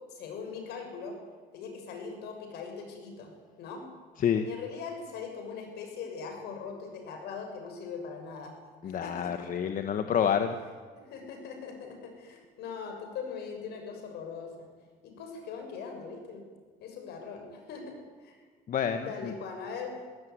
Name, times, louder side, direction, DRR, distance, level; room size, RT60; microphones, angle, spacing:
voice 1, 0.1-1.2 1.5-3.3 3.6-3.8 4.4-8.5 8.8-9.5 10.2-10.3 10.9-14.7 15.0-16.4 16.8-18.4 19.0-19.9, left 5 dB, 75° left, 4 dB, 6.8 m, -41 dB
voice 2, 8.8-10.6 18.7-19.3, left 8 dB, 55° left, 8 dB, 1.5 m, -28 dB
23.0 x 17.0 x 9.6 m, 1.6 s
cardioid pair, 110°, 17 cm